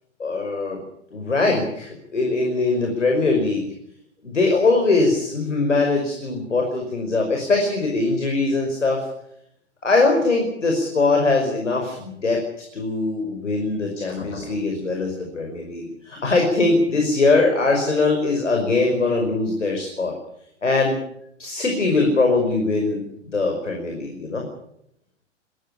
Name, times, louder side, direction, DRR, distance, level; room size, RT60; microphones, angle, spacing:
voice 1, 0.2-0.8 1.1-3.7 4.2-9.0 9.8-12.4 12.7-20.1 20.6-21.0 21.4-24.4, left 3 dB, 75° left, 2 dB, 5.4 m, -21 dB
21.5 x 15.5 x 9.9 m, 0.75 s
figure-of-eight pair, 105°, 37 cm